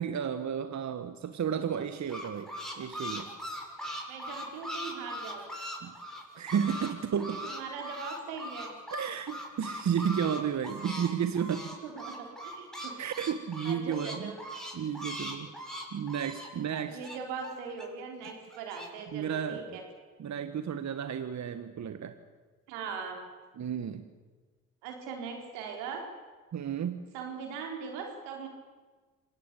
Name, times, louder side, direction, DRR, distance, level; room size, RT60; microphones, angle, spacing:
voice 1, 0.0-3.3 5.8-5.9 6.4-7.4 8.9-11.8 13.0-14.3 14.7-15.5 15.9-17.0 19.1-19.8 20.2-22.2 23.6-24.1 26.5-27.0, right 8 dB, 45° right, 9 dB, 1.6 m, -32 dB
sound 1, 1.7-6.9 7.2-11.1 11.4-17.9 18.2-18.9, equal, ahead, 7.4 m, -40 dB
voice 2, 4.1-5.4 7.2-8.7 11.8-12.9 13.6-14.4 16.9-19.8 22.7-23.2 24.8-26.0 27.1-28.5, right 5 dB, 80° right, 3 dB, 4.5 m, -40 dB
26.5 x 17.5 x 8.5 m, 1.4 s
hypercardioid pair, 55°, 37 cm